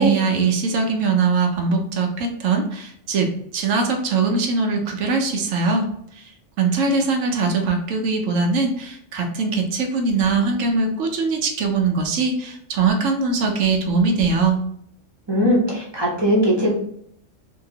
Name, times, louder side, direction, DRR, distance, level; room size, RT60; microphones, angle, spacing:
voice 1, 0.0-5.9 6.1-6.2 6.6-14.6, right 4 dB, 85° right, 3 dB, 1.0 m, -21 dB
voice 2, 15.3-16.7, equal, 25° right, -4 dB, 0.7 m, -19 dB
3.0 x 2.8 x 2.7 m, 0.70 s
omnidirectional pair, 1.3 m